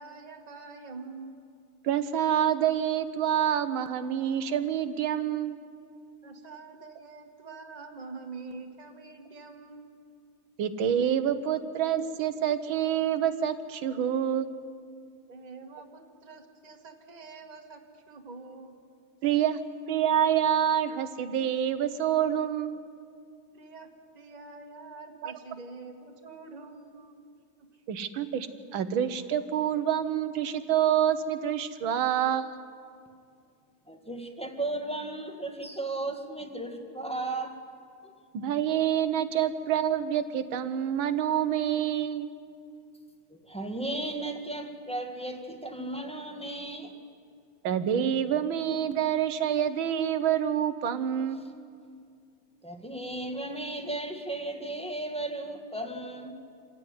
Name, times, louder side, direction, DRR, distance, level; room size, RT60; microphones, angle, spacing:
voice 1, 0.0-1.3 6.2-9.9 15.3-18.7 23.5-27.2 27.6-27.7, right 4 dB, 20° right, 2 dB, 1.7 m, -45 dB
voice 2, 1.8-5.6 10.6-14.5 19.2-19.6 19.9-22.8 25.2-25.3 27.9-32.6 38.3-42.3 47.6-51.5, right 9 dB, 75° right, 11 dB, 1.8 m, -27 dB
voice 3, 33.9-37.6 38.0-38.1 43.3-47.0 52.6-56.4, right 2 dB, 5° left, 2 dB, 1.5 m, -35 dB
26.5 x 15.5 x 9.6 m, 2.3 s
omnidirectional pair, 2.3 m